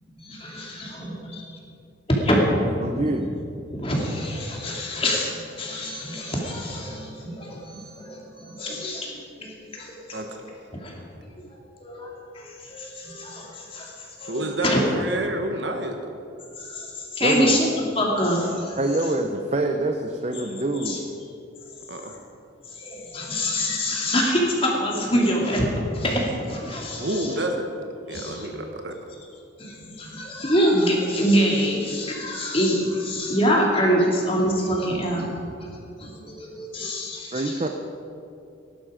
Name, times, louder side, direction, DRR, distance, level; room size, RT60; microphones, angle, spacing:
voice 1, 0.2-1.6 2.1-2.6 2.9-3.1 3.7-10.9 11.4-11.5 11.8-14.8 16.6-17.7 18.0-18.8 20.8-21.0 22.1-22.2 22.7-27.4 28.1-28.5 29.6-35.3 36.0-37.7, equal, 30° left, -2 dB, 2.6 m, -25 dB
voice 2, 2.7-3.3 17.2-17.6 18.8-21.0 37.3-37.7, right 2 dB, 35° right, 4 dB, 0.7 m, -25 dB
voice 3, 14.3-16.1 21.9-22.1 27.0-27.5 28.1-28.9, right 1 dB, 60° right, 4 dB, 1.2 m, -29 dB
17.5 x 11.5 x 5.0 m, 2.6 s
head